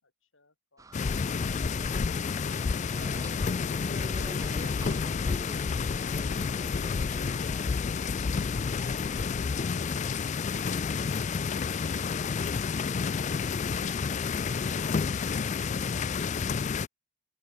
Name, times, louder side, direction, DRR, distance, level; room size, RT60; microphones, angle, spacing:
voice 1, 0.0-2.4, left 3 dB, 65° left, 5.8 m, -64 dB
sound 1, 0.8-15.0, right 2 dB, 15° right, 0.8 m, -51 dB
sound 2, 0.9-16.9, left 5 dB, 35° left, 0.3 m, -30 dB
voice 2, 2.9-5.8 6.3-7.6, right 2 dB, 30° right, 1.6 m, -47 dB
head